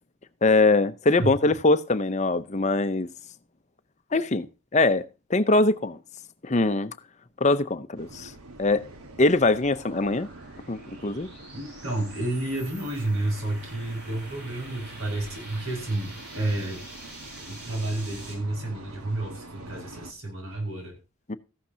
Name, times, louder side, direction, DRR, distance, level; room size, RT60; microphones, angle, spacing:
voice 1, 0.4-3.1 4.1-4.5 4.7-5.0 5.3-6.0 6.4-6.9 7.4-8.3 8.6-8.8 9.2-10.3 10.7-11.3 21.3-21.4, left 2 dB, 30° left, 0.7 m, -22 dB
sound 1, 8.0-20.1, right 2 dB, 90° right, 1.5 m, -46 dB
sound 2, 8.2-18.4, right 1 dB, 50° right, 7.0 m, -47 dB
voice 2, 11.5-16.8 17.5-20.9, right 2 dB, 75° right, 5.5 m, -30 dB
14.5 x 12.0 x 2.8 m
head